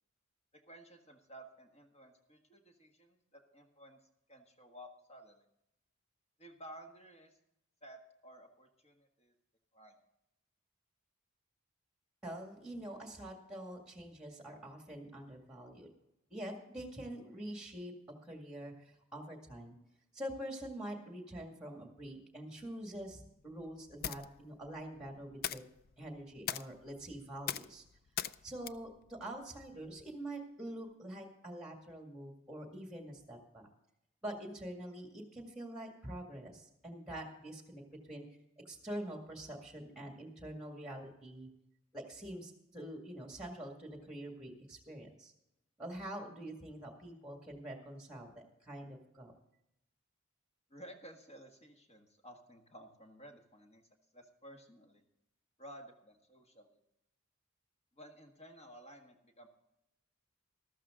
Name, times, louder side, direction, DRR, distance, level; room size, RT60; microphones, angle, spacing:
voice 1, 0.5-4.0 4.3-5.4 6.4-7.4 7.8-9.3 9.7-10.0 50.7-53.8 54.1-55.0 55.6-56.7 57.9-59.5, right 1 dB, 30° left, 3 dB, 1.7 m, -54 dB
voice 2, 12.2-15.9 16.3-17.9 18.2-19.8 20.1-25.6 26.0-27.8 28.4-33.7 34.2-37.8 38.1-38.3 38.7-41.5 41.9-45.3 45.8-49.3, right 1 dB, 5° right, 2 dB, 2.0 m, -45 dB
sound 1, 22.9-30.1, left 10 dB, 45° left, 0.4 m, -44 dB
13.5 x 13.5 x 3.7 m, 0.83 s
head